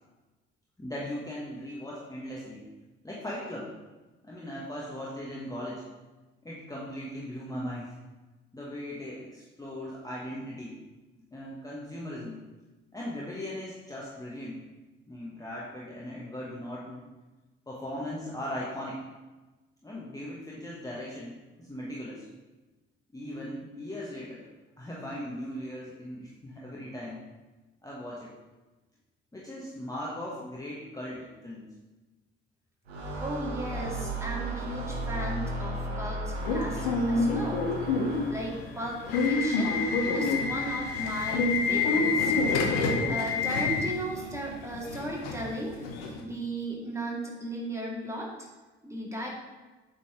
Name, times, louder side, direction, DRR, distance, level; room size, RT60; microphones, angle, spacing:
voice 1, 0.8-2.7 3.0-3.7 4.2-5.9 6.4-7.9 8.5-10.8 11.3-12.4 12.9-14.6 15.1-17.0 17.7-19.0 19.8-22.3 23.1-24.4 24.8-27.2 27.8-28.3 29.3-31.7, left 1 dB, 10° left, -6 dB, 1.4 m, -38 dB
sound 1, 32.9-38.6, right 1 dB, 80° right, 0.9 m, -35 dB
voice 2, 33.2-37.6 38.3-39.7 40.1-42.3 43.1-45.8 46.2-48.3 48.8-49.3, right 1 dB, 10° right, -3 dB, 2.1 m, -36 dB
Subway metro underground / Alarm, 36.4-46.2, left 3 dB, 70° left, 0.9 m, -28 dB
8.2 x 4.0 x 4.7 m, 1.2 s
figure-of-eight pair, 45°, 31 cm